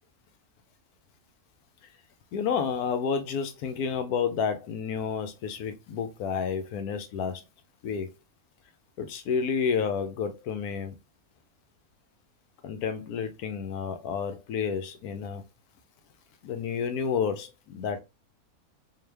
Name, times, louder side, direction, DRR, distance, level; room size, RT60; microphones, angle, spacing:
voice 1, 2.3-7.4 7.8-8.1 9.0-10.9 12.6-15.4 16.4-18.0, left 6 dB, 80° left, 1.1 m, -30 dB
3.8 x 2.6 x 3.3 m
omnidirectional pair, 1.6 m